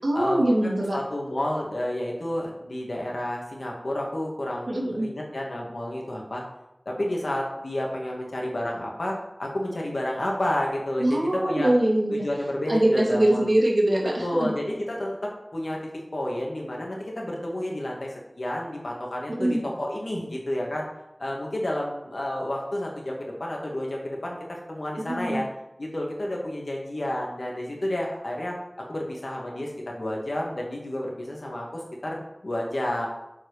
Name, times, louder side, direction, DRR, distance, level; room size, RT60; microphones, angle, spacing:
voice 1, 0.0-1.0 4.7-5.1 11.0-12.3 12.7-14.5 19.3-19.6 25.1-25.4, right 1 dB, 65° right, -2 dB, 2.3 m, -23 dB
voice 2, 0.9-6.4 6.9-11.7 12.1-13.5 14.2-15.8 16.1-20.9 21.2-25.4 25.8-28.5 28.9-33.1, left 1 dB, 75° left, -1 dB, 2.1 m, -30 dB
7.6 x 4.9 x 6.5 m, 0.91 s
wide cardioid pair, 50°, 0 cm